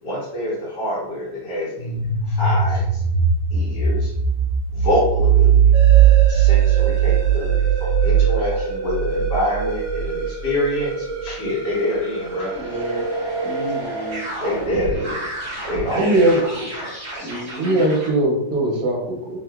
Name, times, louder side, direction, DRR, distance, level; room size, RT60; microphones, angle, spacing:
voice 1, 0.0-2.0 2.2-3.0 3.5-4.1 4.7-5.7 6.3-12.5 14.4-15.3 15.7-16.7, left 1 dB, 60° left, -7 dB, 1.8 m, -26 dB
sound 1, 1.8-10.5, right 8 dB, 85° left, 1.5 m, -18 dB
sound 2, 5.7-18.1, right 2 dB, 30° right, 1.3 m, -29 dB
voice 2, 12.5-13.1 13.4-14.3 17.2-17.9, right 1 dB, 10° left, -8 dB, 0.9 m, -32 dB
voice 3, 15.9-16.4 17.6-19.4, right 1 dB, 60° right, -1 dB, 1.1 m, -19 dB
3.4 x 2.7 x 2.3 m, 0.80 s
omnidirectional pair, 2.1 m